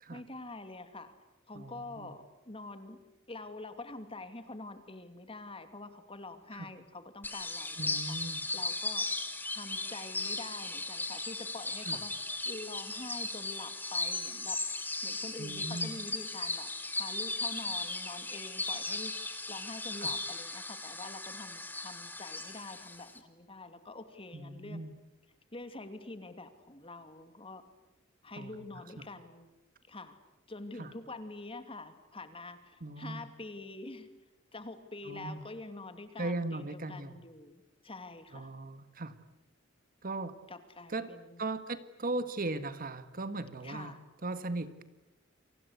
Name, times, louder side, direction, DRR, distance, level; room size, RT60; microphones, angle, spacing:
voice 1, 0.1-1.1 1.5-3.0 3.3-8.2 8.5-9.1 9.5-12.1 12.5-14.6 15.0-16.7 17.0-24.8 25.5-27.6 28.2-29.5 29.9-30.2 30.5-34.1 34.5-38.5 40.5-41.4 43.6-44.0, left 2 dB, 30° left, 9 dB, 2.6 m, -46 dB
voice 2, 1.5-2.1 6.5-6.7 7.8-8.5 11.8-12.0 15.4-15.9 19.9-20.1 24.3-24.9 28.4-29.1 30.8-30.9 32.8-33.3 35.0-35.4 36.2-37.2 38.3-39.2 40.0-40.3 40.9-41.1 41.4-44.8, right 2 dB, 45° right, 11 dB, 1.6 m, -38 dB
sound 1, 7.2-23.2, left 2 dB, 10° left, 2.4 m, -37 dB
30.0 x 24.5 x 8.2 m, 0.95 s
head